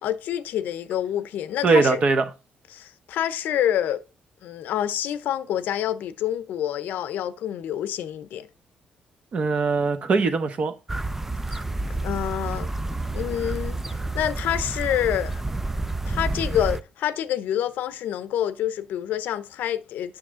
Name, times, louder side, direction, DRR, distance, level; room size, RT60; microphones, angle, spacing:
voice 1, 0.0-2.0 2.7-4.0 4.4-8.5 11.5-11.6 12.0-12.7 13.1-15.4 16.1-20.2, left 11 dB, 85° left, 0.7 m, -27 dB
voice 2, 1.6-2.2 9.3-10.7, right 4 dB, 40° right, 1.0 m, -21 dB
sound 1, 10.9-16.8, right 2 dB, 10° right, 0.4 m, -29 dB
8.8 x 6.3 x 3.7 m
cardioid pair, 145°, 3 cm